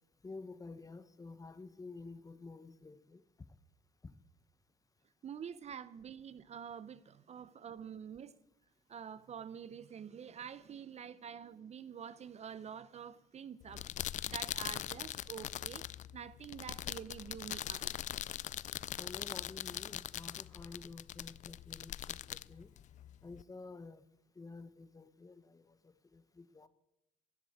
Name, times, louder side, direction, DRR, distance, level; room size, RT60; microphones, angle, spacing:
voice 1, 0.2-3.2 4.0-4.1 19.0-22.7 23.2-24.0 24.4-26.7, left 3 dB, 20° left, 1.0 m, -50 dB
voice 2, 5.2-8.3 8.9-13.9 14.3-15.8 16.1-17.9, right 8 dB, 45° right, 0.6 m, -47 dB
sound 1, 13.6-23.4, left 12 dB, 50° left, 0.4 m, -42 dB
13.5 x 7.6 x 9.4 m
supercardioid pair, 85°, 16 cm